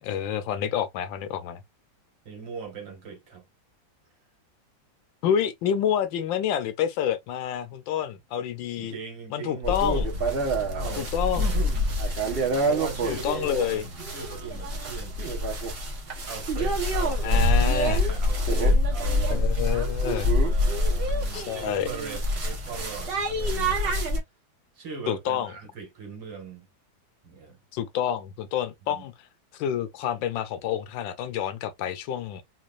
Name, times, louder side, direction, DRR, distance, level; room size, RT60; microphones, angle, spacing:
voice 1, 0.0-1.6 5.2-8.9 9.3-10.1 11.0-11.5 13.1-13.8 17.2-18.0 19.3-20.4 21.3-21.9 25.1-25.5 27.7-29.1 29.5-32.4, left 9 dB, 80° left, 1.3 m, -28 dB
voice 2, 2.3-3.4 8.8-9.7 10.7-11.9 12.6-15.3 16.2-19.5 20.4-24.0 24.8-26.7 27.2-27.6 28.9-29.1, right 5 dB, 70° right, 2.3 m, -40 dB
sound 1, 9.6-24.2, equal, 35° right, 1.1 m, -26 dB
4.0 x 3.0 x 2.4 m
omnidirectional pair, 2.1 m